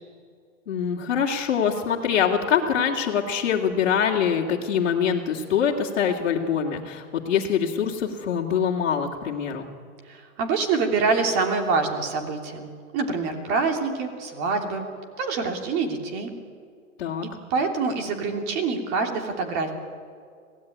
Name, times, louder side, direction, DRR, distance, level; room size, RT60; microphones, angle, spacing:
voice 1, 0.7-9.7 17.0-17.2, left 7 dB, 50° left, -5 dB, 2.5 m, -24 dB
voice 2, 10.0-14.9 15.2-16.3 17.5-19.7, right 4 dB, 25° right, 4 dB, 2.9 m, -26 dB
25.5 x 17.0 x 9.3 m, 2.2 s
hypercardioid pair, 160°, 42 cm